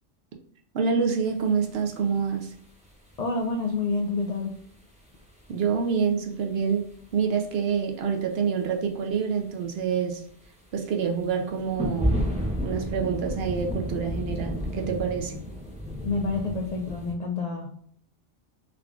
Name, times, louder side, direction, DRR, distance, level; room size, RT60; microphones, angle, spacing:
voice 1, 0.7-2.5 5.5-6.9 7.1-10.2 10.7-12.2 12.6-15.3, right 6 dB, 65° right, 3 dB, 0.7 m, -27 dB
Singapore thunderstorm (binaural), 1.2-3.6 3.9-4.8 5.0-6.0 6.4-7.2 7.5-8.3 8.7-9.1 9.6-9.8 10.2-17.1, equal, 10° right, 0.6 m, -32 dB
voice 2, 3.2-4.5 16.0-17.7, left 3 dB, 70° left, 2 dB, 0.3 m, -28 dB
3.6 x 3.5 x 2.3 m, 0.63 s
omnidirectional pair, 1.2 m